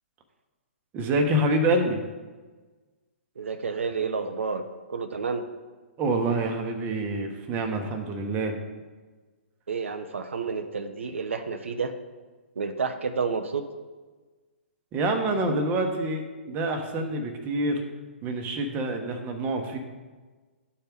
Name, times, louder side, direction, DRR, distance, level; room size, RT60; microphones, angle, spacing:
voice 1, 0.9-2.0 6.0-8.5 14.9-17.8 18.2-19.8, right 1 dB, 25° right, 4 dB, 1.1 m, -26 dB
voice 2, 3.4-4.6 4.9-5.4 9.7-11.9 12.6-13.7, right 5 dB, 80° right, 7 dB, 0.6 m, -30 dB
11.5 x 4.4 x 3.6 m, 1.3 s
hypercardioid pair, 130°, 7 cm